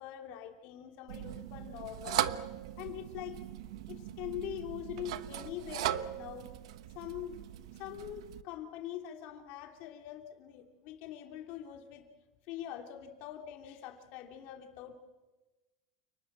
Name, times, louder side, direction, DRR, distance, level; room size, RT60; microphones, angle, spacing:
voice 1, 0.0-2.4 2.8-3.4 3.9-6.5 6.9-7.4 7.7-12.0 12.5-14.9, left 11 dB, 45° left, 4 dB, 3.1 m, -43 dB
sound 1, 1.1-8.4, right 13 dB, 80° right, 1.1 m, -39 dB
29.5 x 19.5 x 7.5 m, 1.1 s
supercardioid pair, 170°, 3 cm